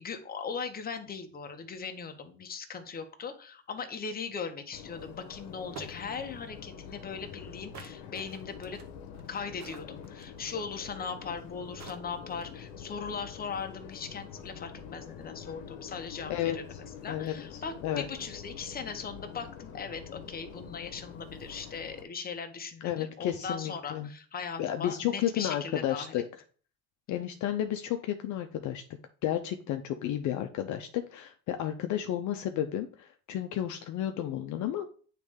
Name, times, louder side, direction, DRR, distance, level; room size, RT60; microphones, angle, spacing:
voice 1, 0.0-8.8 9.3-16.6 17.0-26.2 27.1-27.2, left 5 dB, 25° left, 6 dB, 1.0 m, -39 dB
Subway metro underground, 4.7-22.0, left 7 dB, 70° left, 1.0 m, -46 dB
sound 1, 5.2-5.3 5.8-6.2 7.7-10.4 11.4-11.5 11.8-12.6, right 7 dB, 50° right, 1.0 m, -48 dB
voice 2, 16.3-16.8 17.1-18.1 22.8-24.1 24.6-26.2 27.1-28.8 29.2-34.9, left 11 dB, 55° left, 6 dB, 0.6 m, -32 dB
9.1 x 3.2 x 3.5 m, 0.43 s
supercardioid pair, 105°, 37 cm